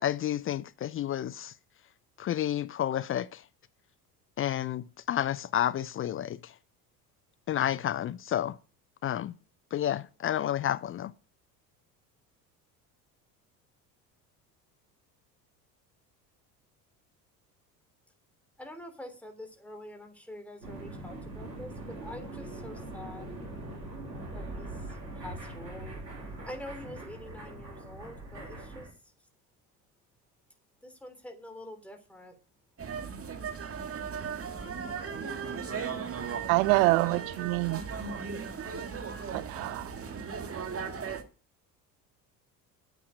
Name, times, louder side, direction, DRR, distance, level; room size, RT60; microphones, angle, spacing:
voice 1, 0.0-1.5 2.2-3.4 4.4-6.5 7.5-8.6 9.0-9.3 9.7-11.1, left 11 dB, 30° left, 0.5 m, -30 dB
voice 2, 18.6-23.3 24.3-26.0 26.4-28.9 30.8-32.3, left 1 dB, 5° left, 3.3 m, -46 dB
sound 1, 20.6-28.9, right 2 dB, 85° right, 3.4 m, -42 dB
sound 2, 32.8-41.2, right 6 dB, 30° right, 1.9 m, -37 dB
voice 3, 36.5-37.8 39.3-39.9, right 23 dB, 60° right, 0.5 m, -26 dB
9.3 x 8.5 x 8.7 m
figure-of-eight pair, 65°, 48 cm